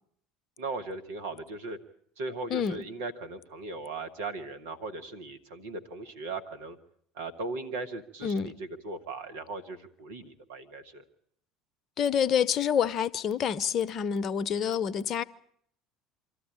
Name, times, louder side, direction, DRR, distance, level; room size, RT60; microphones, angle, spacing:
voice 1, 0.6-1.8 2.2-6.8 7.1-11.0, right 3 dB, 75° right, 1.7 m, -38 dB
voice 2, 2.5-2.8 8.2-8.5 12.0-15.2, left 8 dB, 45° left, 0.8 m, -27 dB
25.0 x 13.5 x 8.9 m
figure-of-eight pair, 65°, 0 cm